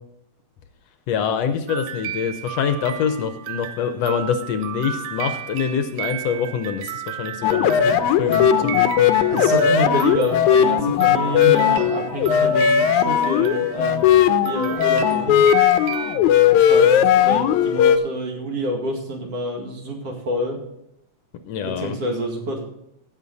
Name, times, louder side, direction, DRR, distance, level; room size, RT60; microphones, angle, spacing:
voice 1, 1.1-9.1 21.4-22.0, left 7 dB, 70° left, 8 dB, 1.8 m, -25 dB
sound 1, 1.7-14.2 14.4-16.2, right 10 dB, 75° right, 1.7 m, -33 dB
sound 2, 7.4-18.0, left 9 dB, 85° left, 2.1 m, -17 dB
voice 2, 9.3-14.1 14.4-15.4 16.5-20.6 21.6-22.7, right 1 dB, 55° right, 1 dB, 3.0 m, -27 dB
16.5 x 6.8 x 4.0 m, 0.78 s
omnidirectional pair, 3.3 m